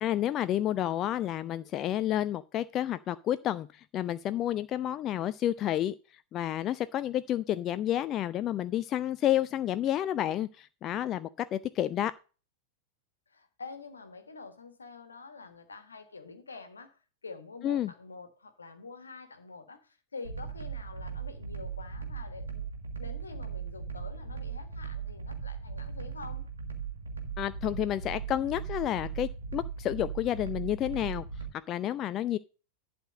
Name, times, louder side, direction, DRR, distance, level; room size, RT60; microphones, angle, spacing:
voice 1, 0.0-5.9 6.3-12.1 17.6-17.9 27.4-31.3 31.7-32.4, left 12 dB, 30° left, 0.4 m, -30 dB
voice 2, 13.3-22.6 23.0-26.5, left 4 dB, 75° left, 1.6 m, -46 dB
sound 1, 20.2-31.5, right 6 dB, 70° right, 1.7 m, -38 dB
11.5 x 4.3 x 6.3 m
figure-of-eight pair, 90°, 0 cm